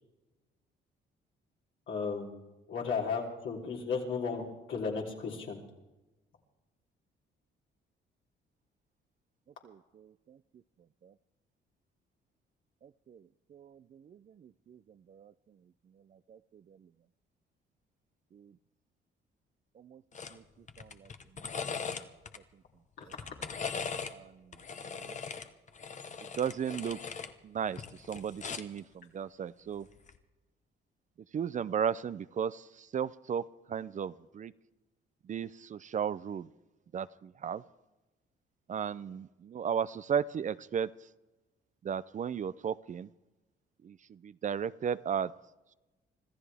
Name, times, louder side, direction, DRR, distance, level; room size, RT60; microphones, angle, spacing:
voice 1, 1.9-2.4 2.7-5.6 23.0-23.1, left 5 dB, 75° left, -2 dB, 3.5 m, -34 dB
voice 2, 9.6-10.4 11.0-11.1 12.8-13.2 13.5-14.8 15.1-15.3 16.3-16.4 18.3-18.5 19.8-20.0 20.3-20.4 20.8-21.1 24.1-24.3 25.0-25.2 26.4-27.0 27.4-27.8 28.1-29.9 31.3-33.4 33.7-34.5 35.3-36.5 36.9-37.6 38.7-40.9 41.8-43.1 43.8-45.3, right 8 dB, 40° right, 17 dB, 0.4 m, -35 dB
sound 1, 20.1-20.4 20.7-22.4 23.0-24.2 24.5-27.3 27.7-28.8 30.0-30.2, left 5 dB, 40° left, 1.0 m, -40 dB
25.5 x 14.0 x 3.4 m, 1.1 s
cardioid pair, 90°, 20 cm